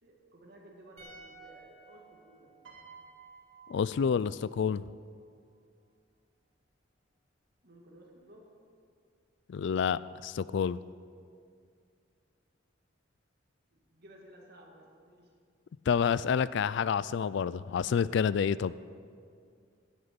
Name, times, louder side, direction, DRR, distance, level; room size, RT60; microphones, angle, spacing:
voice 1, 0.0-2.5 7.6-8.5 13.7-15.3, right 1 dB, 55° right, -1 dB, 2.1 m, -55 dB
sound 1, 1.0-4.2 4.4-4.6, right 3 dB, 35° right, 3.7 m, -56 dB
Piano, 2.6-5.0 6.0-6.3, right 6 dB, 85° right, 2.8 m, -55 dB
voice 2, 3.7-4.8 9.5-10.8 15.9-18.7, left 7 dB, 65° left, 18 dB, 0.3 m, -28 dB
16.5 x 9.8 x 5.2 m, 2.3 s
head